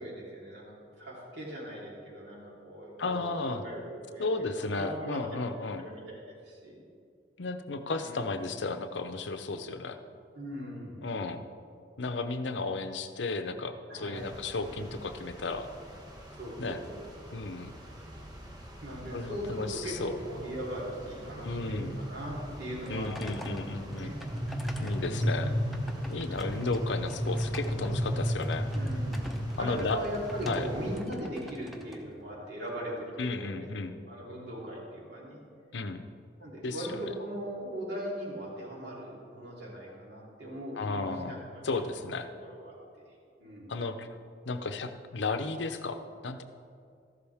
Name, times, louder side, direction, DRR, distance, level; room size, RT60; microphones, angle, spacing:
voice 1, 0.0-5.2 5.8-6.8 8.0-8.3 10.3-11.1 13.9-14.3 14.6-14.9 16.3-17.4 18.8-24.2 25.2-25.4 26.3-26.6 28.7-29.2 29.5-35.4 36.4-41.8 42.4-42.8 43.0-43.1 43.4-43.8, equal, 70° right, -5 dB, 3.5 m, -40 dB
voice 2, 3.0-3.6 4.2-5.8 7.4-10.0 11.0-11.4 12.0-15.7 16.6-16.8 17.3-17.7 19.1-20.2 21.4-21.9 22.9-24.1 24.8-25.5 26.1-28.7 29.6-30.0 30.5-30.7 33.2-34.0 35.7-36.0 36.6-37.0 40.8-41.4 41.6-42.3 43.7-44.1 44.5-46.4, left 3 dB, 90° left, 8 dB, 0.7 m, -34 dB
sound 1, 14.2-31.0, equal, 25° right, 1.5 m, -36 dB
sound 2, 22.7-32.8, left 1 dB, ahead, 0.8 m, -48 dB
14.0 x 11.5 x 3.5 m, 2.3 s
head